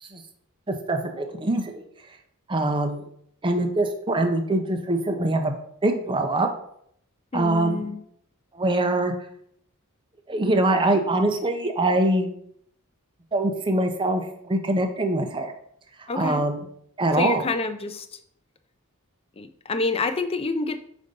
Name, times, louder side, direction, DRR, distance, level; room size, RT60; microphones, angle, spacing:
voice 1, 0.7-1.8 2.5-3.1 3.4-5.5 5.8-6.5 7.3-7.9 8.5-9.1 10.3-12.3 13.3-15.5 16.2-16.6 17.0-17.4, right 2 dB, 20° right, 4 dB, 0.6 m, -23 dB
voice 2, 7.3-8.0 16.1-16.4 17.1-18.2 19.4-20.8, left 3 dB, 25° left, 8 dB, 0.5 m, -27 dB
5.2 x 4.0 x 5.2 m, 0.68 s
head